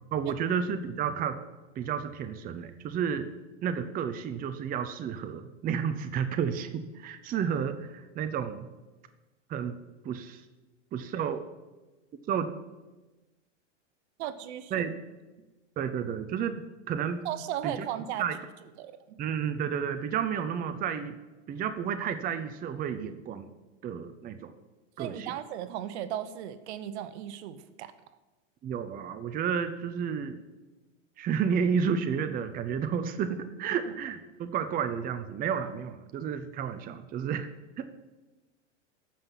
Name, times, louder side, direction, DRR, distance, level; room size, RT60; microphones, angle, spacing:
voice 1, 0.1-1.4 1.7-3.3 3.6-8.7 9.5-9.8 10.0-10.4 10.9-11.4 12.3-12.5 14.7-14.9 15.8-17.3 17.6-17.8 18.2-18.4 19.2-21.2 21.5-23.5 23.8-24.5 25.0-25.3 28.6-30.4 31.2-37.5 37.8-37.9, right 7 dB, 25° right, 9 dB, 0.7 m, -31 dB
voice 2, 14.2-14.9 17.2-18.2 18.8-19.2 25.0-27.9 33.8-33.9, right 11 dB, 60° right, 12 dB, 1.1 m, -36 dB
14.0 x 5.8 x 7.3 m, 1.2 s
hypercardioid pair, 120°, 38 cm